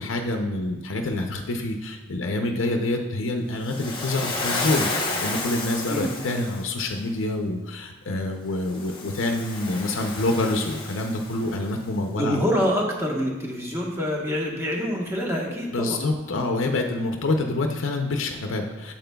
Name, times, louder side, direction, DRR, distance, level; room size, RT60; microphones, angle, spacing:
voice 1, 0.0-12.4 15.7-18.9, left 2 dB, 75° left, 3 dB, 0.6 m, -27 dB
Waves surf, 3.6-6.8 8.6-11.7, left 3 dB, 25° left, 0.9 m, -31 dB
voice 2, 5.9-6.2 12.1-16.0, equal, 15° right, -2 dB, 1.2 m, -26 dB
8.8 x 7.4 x 2.3 m, 1.1 s
head